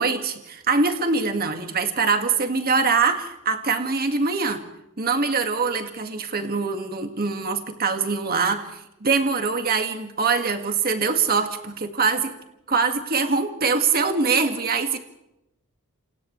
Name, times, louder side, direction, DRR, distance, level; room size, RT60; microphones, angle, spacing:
voice 1, 0.0-4.6 5.0-8.7 9.0-12.3 12.7-15.0, right 4 dB, 45° right, 6 dB, 2.1 m, -23 dB
29.0 x 28.5 x 3.3 m, 0.87 s
head